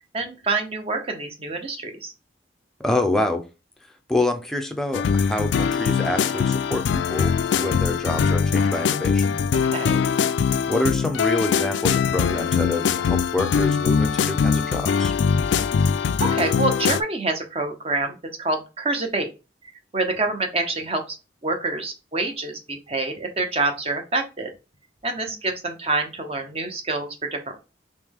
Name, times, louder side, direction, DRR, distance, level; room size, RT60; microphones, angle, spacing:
voice 1, 0.1-2.1 9.6-10.0 16.2-19.3 19.9-21.2 21.4-24.5 25.0-27.6, right 3 dB, 35° right, 0.8 m, -26 dB
voice 2, 2.8-3.4 4.1-7.3 7.6-9.4 10.7-15.1, left 1 dB, 5° left, 0.5 m, -26 dB
sound 1, 4.9-17.0, left 6 dB, 85° left, 0.3 m, -22 dB
3.2 x 3.1 x 3.6 m
head